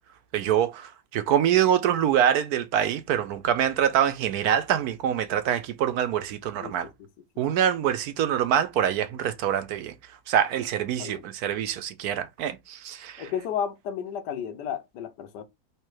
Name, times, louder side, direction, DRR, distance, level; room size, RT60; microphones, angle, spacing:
voice 1, 0.3-6.9 7.4-9.9 10.3-13.3, right 9 dB, 70° right, 1.1 m, -25 dB
voice 2, 13.2-15.4, left 8 dB, 85° left, 1.3 m, -32 dB
3.4 x 3.3 x 4.6 m
omnidirectional pair, 1.7 m